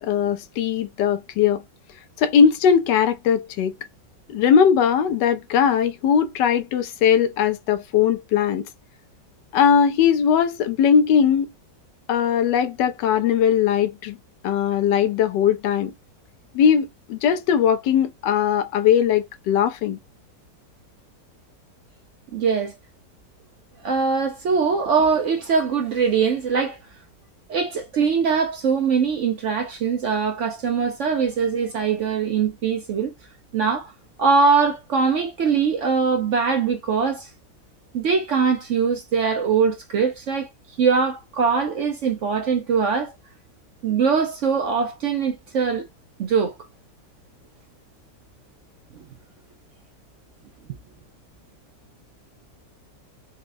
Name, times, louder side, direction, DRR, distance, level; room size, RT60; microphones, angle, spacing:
voice 1, 0.0-1.6 2.2-3.7 4.3-8.6 9.5-11.5 12.1-14.2 14.4-15.9 16.5-20.0, left 8 dB, 80° left, 1.2 m, -19 dB
voice 2, 22.3-22.7 23.8-26.8 27.5-33.1 33.5-33.9 34.2-37.3 37.9-40.5 40.8-43.1 43.8-45.8 46.2-46.6, right 5 dB, 70° right, 0.7 m, -22 dB
4.1 x 2.4 x 2.5 m
omnidirectional pair, 1.9 m